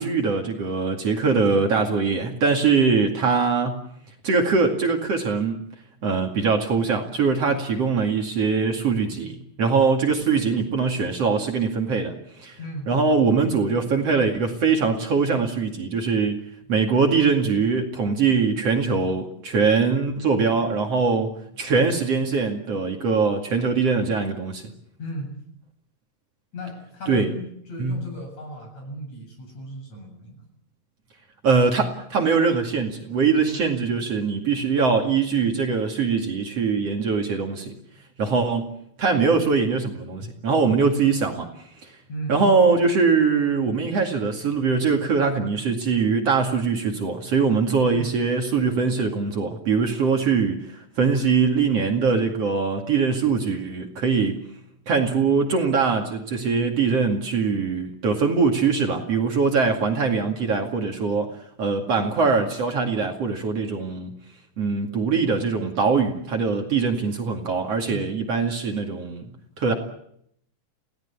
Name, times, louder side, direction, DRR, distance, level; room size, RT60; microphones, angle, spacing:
voice 1, 0.0-3.8 4.2-5.7 6.0-12.6 12.9-16.4 16.7-24.6 27.1-27.3 27.8-28.0 31.4-37.7 38.2-41.5 41.8-41.9 42.3-54.4 54.9-61.3 61.6-64.1 64.6-69.3 69.6-69.7, right 5 dB, 50° right, 3 dB, 3.2 m, -22 dB
voice 2, 12.6-12.9 25.0-25.3 26.5-30.5 42.1-42.4 47.9-48.1 67.9-68.1, equal, 55° left, 3 dB, 8.9 m, -36 dB
28.0 x 18.0 x 8.5 m, 0.73 s
omnidirectional pair, 3.8 m